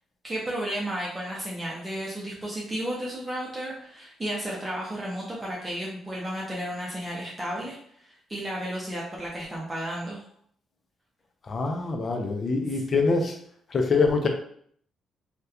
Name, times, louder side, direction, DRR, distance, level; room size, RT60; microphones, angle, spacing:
voice 1, 0.2-10.2 12.7-12.8, right 1 dB, 20° right, -4 dB, 0.6 m, -33 dB
voice 2, 11.5-13.4 13.7-14.3, left 4 dB, 40° left, 3 dB, 0.5 m, -24 dB
2.7 x 2.2 x 2.3 m, 0.63 s
cardioid pair, 90°, 0 cm